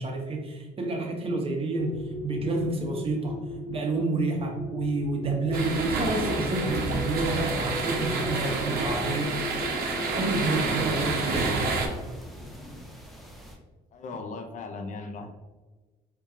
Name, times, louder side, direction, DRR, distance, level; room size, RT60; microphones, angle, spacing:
voice 1, 0.0-3.4 3.7-9.4 10.1-11.8, right 2 dB, 35° right, 1 dB, 0.9 m, -29 dB
sound 1, 1.8-12.8, left 2 dB, 20° left, 1.0 m, -39 dB
sound 2, 5.5-11.9, right 3 dB, 65° right, 0.9 m, -29 dB
sound 3, 6.7-13.6, equal, ahead, 0.6 m, -41 dB
voice 2, 13.9-15.3, left 3 dB, 45° left, 5 dB, 0.5 m, -37 dB
4.4 x 2.8 x 2.4 m, 1.2 s
cardioid pair, 110°, 17 cm